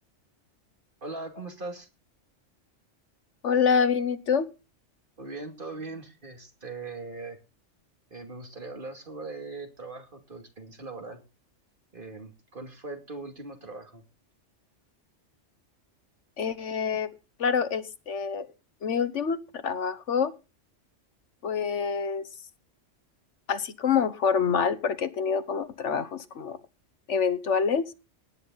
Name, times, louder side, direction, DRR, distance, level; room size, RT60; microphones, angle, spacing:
voice 1, 1.0-1.9 5.2-7.4 8.1-11.2 11.9-14.0, right 3 dB, 45° right, 4 dB, 2.6 m, -40 dB
voice 2, 3.4-4.5 16.4-17.1 17.4-18.5 18.8-20.3 21.4-22.3 23.5-26.6 27.1-27.9, left 6 dB, 70° left, 13 dB, 1.4 m, -26 dB
18.0 x 10.0 x 4.0 m, 0.30 s
omnidirectional pair, 1.3 m